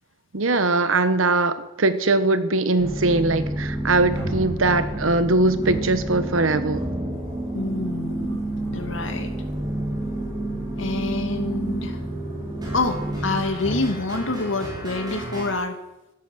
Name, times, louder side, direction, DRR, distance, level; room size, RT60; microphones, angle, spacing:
voice 1, 0.3-6.8, right 2 dB, 85° right, 12 dB, 1.3 m, -21 dB
sound 1, 2.8-15.5, right 1 dB, 20° right, 5.3 m, -29 dB
voice 2, 7.5-8.4 8.7-9.3 10.7-12.0 12.7-15.8, left 2 dB, 70° left, 6 dB, 2.3 m, -27 dB
15.0 x 13.0 x 6.3 m, 0.94 s
head